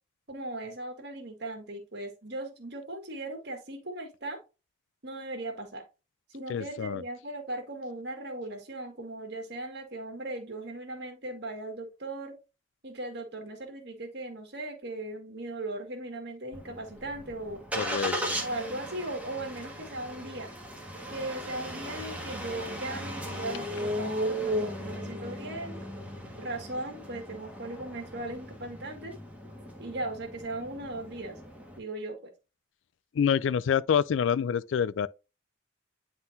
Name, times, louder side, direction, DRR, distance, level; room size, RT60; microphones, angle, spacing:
voice 1, 0.3-4.4 5.0-5.8 6.3-12.4 12.8-17.6 18.4-20.5 21.1-25.8 26.4-29.1 29.8-31.4 31.8-32.3, right 2 dB, 55° right, 1.7 m, -38 dB
voice 2, 6.5-7.0 17.8-18.4 33.1-35.1, left 7 dB, 70° left, 0.3 m, -27 dB
Engine starting, 16.5-31.8, equal, 5° right, 1.3 m, -37 dB
9.6 x 3.8 x 2.7 m
head